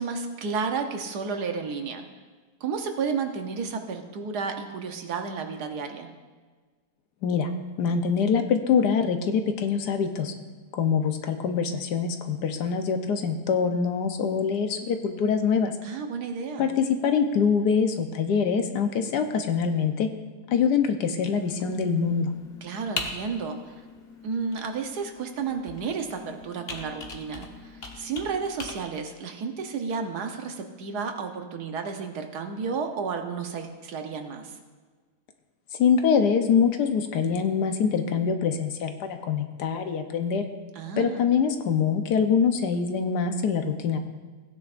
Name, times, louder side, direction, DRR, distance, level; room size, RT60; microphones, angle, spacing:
voice 1, 0.0-2.0 2.6-6.1 15.8-16.7 22.6-23.7 24.2-34.6 40.7-41.3, right 5 dB, 70° right, 5 dB, 1.4 m, -32 dB
voice 2, 7.8-10.3 10.7-15.7 16.6-20.1 20.5-22.3 35.8-40.4 41.0-44.0, left 6 dB, 75° left, 6 dB, 1.4 m, -24 dB
Computer keyboard, 21.3-28.7, left 3 dB, 40° left, 1.2 m, -41 dB
16.5 x 9.5 x 2.5 m, 1.4 s
omnidirectional pair, 1.8 m